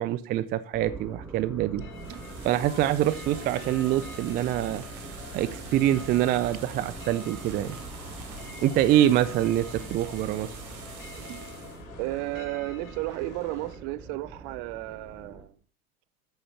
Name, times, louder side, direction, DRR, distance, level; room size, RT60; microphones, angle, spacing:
voice 1, 0.0-1.8 2.1-4.8 5.3-7.8 8.6-10.6 11.3-11.4, right 12 dB, 25° right, 0.4 m, -25 dB
sound 1, 0.7-15.4, right 3 dB, 5° right, 3.1 m, -43 dB
sound 2, 1.8-13.8, left 6 dB, 70° left, 2.7 m, -46 dB
sound 3, 1.9-11.8, right 7 dB, 70° right, 2.8 m, -47 dB
voice 2, 12.0-15.6, right 19 dB, 45° right, 0.7 m, -33 dB
8.7 x 7.3 x 5.6 m
hypercardioid pair, 95°, 43 cm